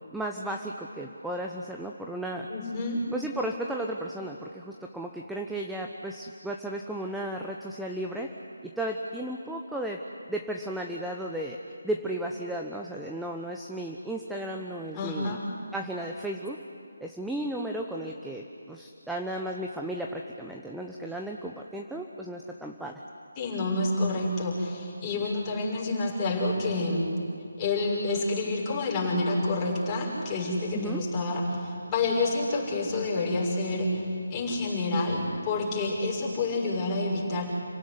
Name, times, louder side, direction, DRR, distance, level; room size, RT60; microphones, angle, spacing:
voice 1, 0.1-2.5 3.1-8.3 8.6-10.0 10.3-11.6 11.8-15.4 15.7-16.6 17.0-23.0 30.7-31.0, right 1 dB, ahead, 0 dB, 1.0 m, -34 dB
voice 2, 2.5-3.0 14.9-15.4 23.4-27.0 27.6-34.0 34.3-37.4, left 2 dB, 15° left, -4 dB, 6.5 m, -28 dB
29.0 x 17.0 x 9.8 m, 2.5 s
figure-of-eight pair, 155°, 0 cm